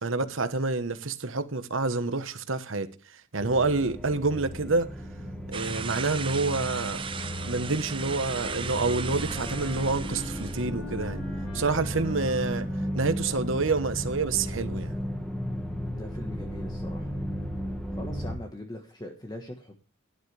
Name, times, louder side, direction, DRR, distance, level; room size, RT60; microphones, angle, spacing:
voice 1, 0.0-2.9 3.3-4.9 5.5-7.0 7.4-11.2 11.5-12.7 12.9-14.9, right 3 dB, 70° right, 1.2 m, -28 dB
sound 1, 3.4-18.4, equal, 5° left, 1.6 m, -35 dB
sound 2, 5.5-10.7, right 6 dB, 25° right, 0.6 m, -37 dB
Wind instrument woodwind instrument, 7.0-13.7, left 3 dB, 50° left, 4.0 m, -45 dB
voice 2, 15.5-17.1 17.9-19.8, left 1 dB, 20° left, 1.3 m, -41 dB
12.0 x 11.5 x 3.3 m
head